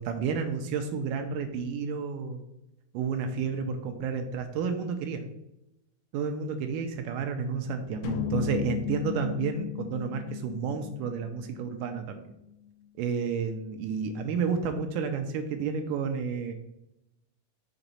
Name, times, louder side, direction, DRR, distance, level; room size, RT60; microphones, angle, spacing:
voice 1, 0.0-2.4 2.9-5.3 6.1-12.2 13.0-16.5, right 6 dB, 80° right, 6 dB, 2.0 m, -31 dB
sound 1, 8.0-12.4, left 9 dB, 85° left, 2.4 m, -35 dB
6.0 x 3.9 x 5.5 m, 0.89 s
omnidirectional pair, 4.2 m